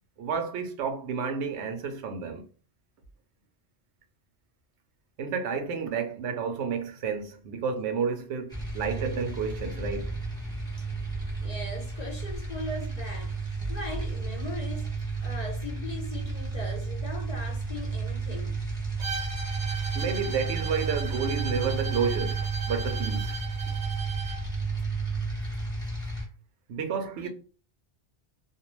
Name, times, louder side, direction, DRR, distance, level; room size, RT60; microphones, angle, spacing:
voice 1, 0.2-2.5 5.2-10.2 19.9-23.4 26.7-27.3, right 6 dB, 85° right, 0.9 m, -31 dB
sound 1, 8.5-26.3, right 4 dB, 5° left, 0.8 m, -32 dB
voice 2, 11.4-18.6 27.2-27.3, left 2 dB, 55° left, 0.5 m, -39 dB
Bowed string instrument, 19.0-24.5, right 5 dB, 55° right, 0.6 m, -37 dB
2.3 x 2.2 x 3.0 m
omnidirectional pair, 1.1 m